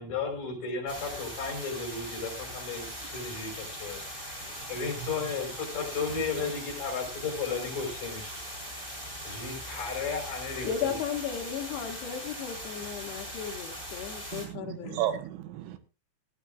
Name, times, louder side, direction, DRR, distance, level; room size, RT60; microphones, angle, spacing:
voice 1, 0.0-4.0 4.7-8.4 9.2-11.0, left 5 dB, 45° left, 1 dB, 6.3 m, -34 dB
sound 1, 0.9-14.5, equal, 10° right, 4.2 m, -40 dB
voice 2, 4.6-5.3 6.1-6.5 14.3-15.8, right 11 dB, 90° right, 9 dB, 3.6 m, -35 dB
voice 3, 10.6-15.0, left 8 dB, 70° left, 4 dB, 3.5 m, -35 dB
18.0 x 14.0 x 2.5 m, 0.31 s
omnidirectional pair, 5.3 m